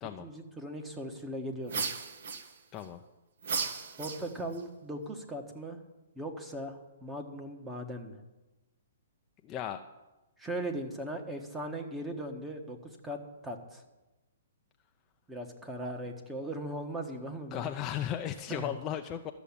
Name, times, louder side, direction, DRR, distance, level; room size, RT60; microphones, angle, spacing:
voice 1, 0.2-1.9 4.0-5.8 6.1-8.2 10.4-12.8 13.0-13.8 15.3-17.7 18.5-18.7, right 1 dB, 10° right, 4 dB, 1.4 m, -39 dB
sound 1, 1.7-2.8 3.4-4.6, right 5 dB, 65° right, 1.4 m, -35 dB
voice 2, 9.4-9.8 17.5-19.3, left 10 dB, 25° left, 5 dB, 0.5 m, -35 dB
12.5 x 7.0 x 8.6 m, 1.1 s
hypercardioid pair, 150°, 0 cm